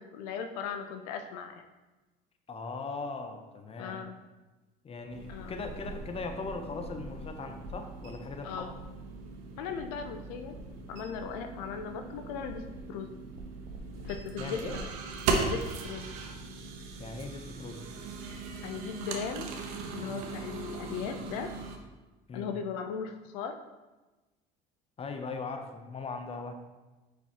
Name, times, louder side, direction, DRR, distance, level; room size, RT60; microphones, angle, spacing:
voice 1, 0.0-1.6 3.8-4.2 5.3-5.5 8.4-8.7 9.6-10.5 10.9-12.6 12.9-13.1 14.0-14.9 15.4-16.1 18.6-19.5 19.9-21.5 22.3-23.6, left 7 dB, 80° left, 6 dB, 0.5 m, -37 dB
voice 2, 2.5-4.0 4.8-8.7 14.4-14.8 17.0-17.8 22.3-22.5 25.0-26.5, left 4 dB, 30° left, 6 dB, 0.8 m, -39 dB
sound 1, 5.1-21.8, right 4 dB, 80° right, 0.8 m, -38 dB
6.3 x 5.2 x 2.8 m, 1.2 s
supercardioid pair, 80°, 20 cm